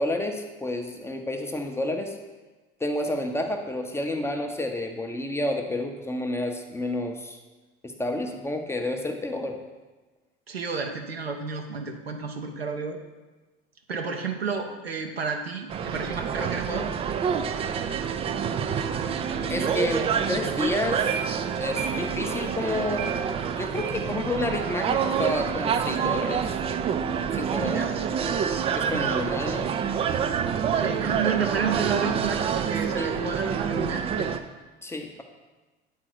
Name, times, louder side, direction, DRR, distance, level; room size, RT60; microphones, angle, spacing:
voice 1, 0.0-2.2 2.8-7.4 7.8-9.6 19.5-21.2 21.5-23.2 23.5-26.6 27.3-27.8 28.7-29.7 33.0-33.1 34.8-35.2, left 1 dB, 10° left, 4 dB, 0.7 m, -30 dB
voice 2, 10.5-13.0 13.9-16.9 27.6-27.9 28.9-29.1 30.7-34.3, right 5 dB, 85° right, 3 dB, 0.8 m, -31 dB
sound 1, 15.7-34.4, right 7 dB, 20° right, 0.3 m, -27 dB
8.8 x 3.8 x 4.5 m, 1.2 s
figure-of-eight pair, 65°, 30 cm